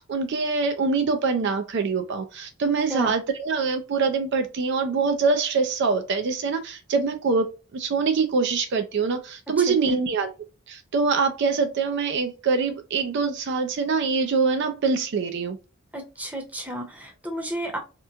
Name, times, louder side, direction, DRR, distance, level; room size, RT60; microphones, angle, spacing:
voice 1, 0.0-10.3 10.7-15.6, right 4 dB, 55° right, 0.4 m, -24 dB
voice 2, 9.7-10.0 15.9-17.8, equal, 5° right, 0.8 m, -32 dB
2.9 x 2.2 x 2.3 m
head